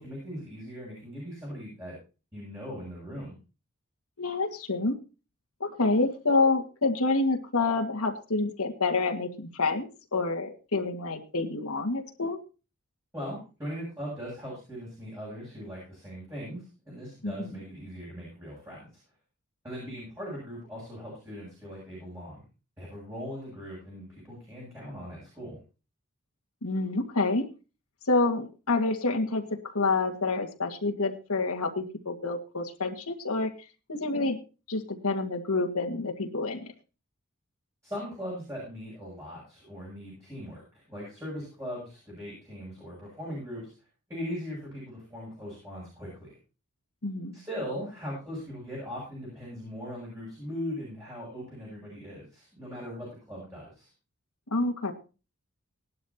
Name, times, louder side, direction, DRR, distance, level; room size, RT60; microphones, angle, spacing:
voice 1, 0.0-2.0 2.3-3.4 13.1-19.0 19.6-22.5 22.8-25.6 37.8-43.7 44.1-46.4 47.3-53.9, equal, 15° right, -6 dB, 7.6 m, -39 dB
voice 2, 4.2-5.0 5.6-12.4 17.2-17.6 26.6-27.5 28.1-33.5 33.9-34.4 34.7-36.7 47.0-47.4 54.5-54.9, left 3 dB, 80° left, 2 dB, 1.9 m, -28 dB
18.5 x 11.5 x 2.9 m, 0.33 s
head